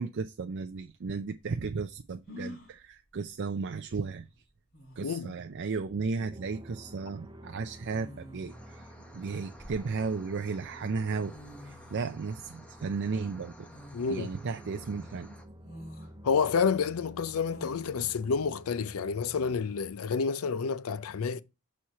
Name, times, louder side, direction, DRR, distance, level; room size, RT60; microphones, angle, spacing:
voice 1, 0.0-4.3 5.0-8.8 9.1-11.4 11.6-13.7 14.1-15.3, right 4 dB, 55° right, 0.5 m, -34 dB
sound 1, 2.3-2.8 4.3-4.4 4.7-5.2 6.5-6.8 7.8-8.6 9.3-10.3 11.0-11.1 11.2-12.1 13.7-14.3 14.8-14.9 15.6-16.1 17.5-18.1, left 1 dB, 60° left, 4.3 m, -47 dB
voice 2, 5.0-5.4 13.9-14.3 16.2-21.4, left 5 dB, 80° left, 0.5 m, -29 dB
sound 2, 6.2-19.9, equal, 20° right, 0.7 m, -51 dB
sound 3, 8.5-15.5, equal, 5° left, 1.0 m, -53 dB
6.3 x 4.4 x 5.5 m
head